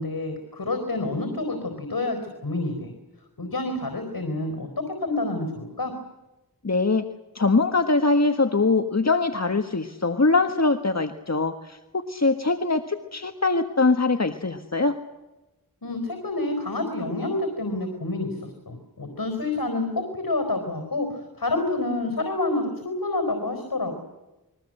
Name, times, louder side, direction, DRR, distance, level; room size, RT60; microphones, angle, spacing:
voice 1, 0.0-2.9 3.4-5.9 15.8-23.9, left 2 dB, 85° left, 6 dB, 4.5 m, -28 dB
voice 2, 6.6-7.1 7.3-15.0, left 3 dB, 50° left, 6 dB, 1.6 m, -22 dB
29.5 x 22.5 x 7.8 m, 1.0 s
wide cardioid pair, 50°, 35 cm